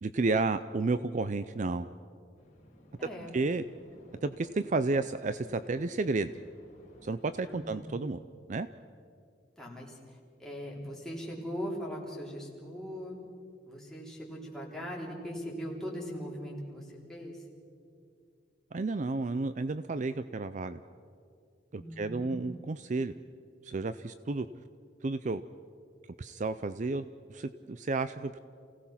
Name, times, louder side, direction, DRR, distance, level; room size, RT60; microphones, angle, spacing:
voice 1, 0.0-1.9 3.3-3.6 4.2-6.3 7.0-8.2 8.5-8.7 18.7-20.8 21.7-23.1 23.6-24.5 25.0-25.4 26.2-28.4, right 3 dB, 40° right, 13 dB, 0.4 m, -31 dB
sound 1, 2.3-7.7, left 1 dB, 40° left, 3.6 m, -56 dB
voice 2, 3.0-3.3 7.5-7.8 9.6-13.2 13.6-17.4 21.8-22.4, equal, 5° left, -4 dB, 3.7 m, -40 dB
28.5 x 17.5 x 5.8 m, 2.4 s
head